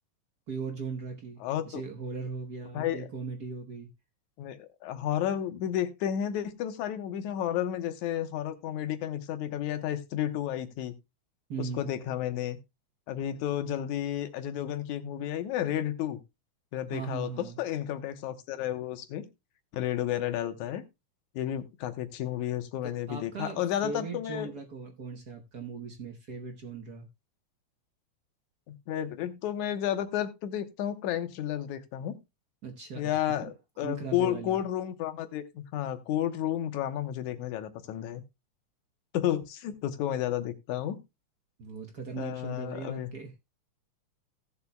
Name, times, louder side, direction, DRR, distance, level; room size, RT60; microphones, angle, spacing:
voice 1, 0.5-1.4 1.6-3.9 11.5-12.0 16.9-17.6 22.8-27.1 32.6-33.2 33.4-33.5 33.8-34.6 41.6-43.3, right 5 dB, 65° right, 0.9 m, -38 dB
voice 2, 1.4-1.8 2.7-3.1 4.4-10.9 11.6-12.6 13.1-16.2 16.7-19.3 19.7-20.8 21.4-24.5 28.7-32.2 33.0-38.2 39.1-41.0 42.2-43.1, left 11 dB, 85° left, 2.4 m, -32 dB
17.5 x 7.1 x 2.2 m
omnidirectional pair, 3.4 m